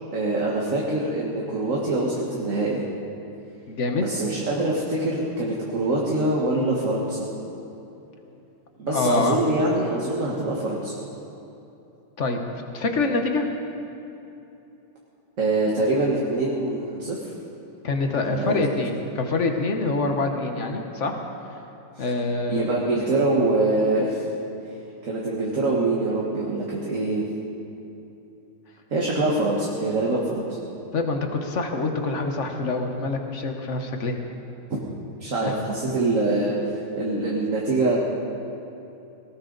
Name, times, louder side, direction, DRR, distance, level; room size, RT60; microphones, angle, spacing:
voice 1, 0.1-2.8 4.0-7.3 8.8-10.9 15.4-17.2 18.1-18.6 22.0-22.1 22.5-24.2 25.0-27.2 28.9-30.6 35.2-36.6 37.0-38.0, right 2 dB, 40° right, -4 dB, 1.7 m, -24 dB
voice 2, 3.7-4.0 8.9-9.4 12.2-12.4 12.7-13.5 17.8-21.2 22.0-22.8 30.9-34.2 35.4-35.5, left 3 dB, 45° left, 4 dB, 1.1 m, -25 dB
18.5 x 18.0 x 4.0 m, 2.9 s
omnidirectional pair, 2.4 m